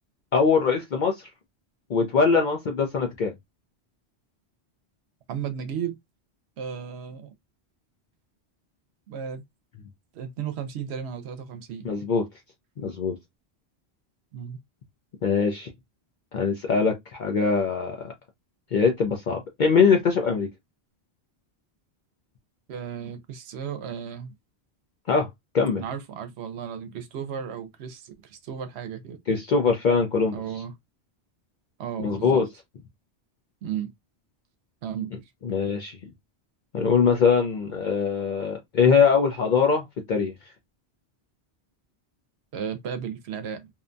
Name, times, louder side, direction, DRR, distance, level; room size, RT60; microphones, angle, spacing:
voice 1, 0.3-1.3 1.9-3.3 11.8-12.2 12.8-13.1 15.2-15.7 16.3-18.1 18.7-20.5 25.1-25.3 25.5-25.8 29.3-30.4 32.0-32.5 35.4-36.0 36.7-40.3, left 5 dB, 55° left, 0.6 m, -22 dB
voice 2, 5.3-6.0 6.6-7.3 9.1-9.4 10.1-11.9 14.3-14.6 22.7-24.3 25.8-29.2 30.3-30.7 31.8-32.4 33.6-33.9 34.8-35.1 42.5-43.7, right 8 dB, 80° right, 0.8 m, -34 dB
2.7 x 2.2 x 2.5 m
omnidirectional pair, 1.1 m